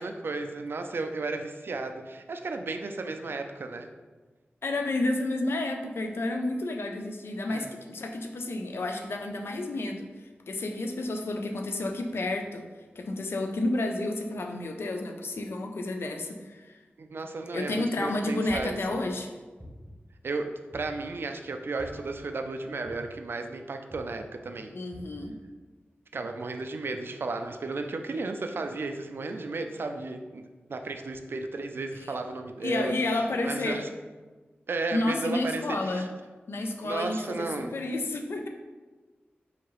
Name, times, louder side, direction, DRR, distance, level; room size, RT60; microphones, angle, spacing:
voice 1, 0.0-3.9 7.5-7.8 17.0-19.0 20.2-24.8 26.1-33.9 34.7-36.1 36.8-37.7, right 3 dB, 65° right, 6 dB, 0.4 m, -34 dB
voice 2, 4.6-12.6 13.0-16.8 17.5-19.3 24.7-25.4 32.6-33.8 34.9-36.1 36.5-38.5, left 2 dB, 70° left, 4 dB, 0.4 m, -31 dB
sound 1, 18.5-18.9 19.6-20.1 20.7-21.2 21.8-22.2 22.8-23.3 23.9-24.2 24.9-25.3, equal, 5° right, 0.8 m, -46 dB
4.7 x 2.8 x 3.0 m, 1.3 s
wide cardioid pair, 100°, 4 cm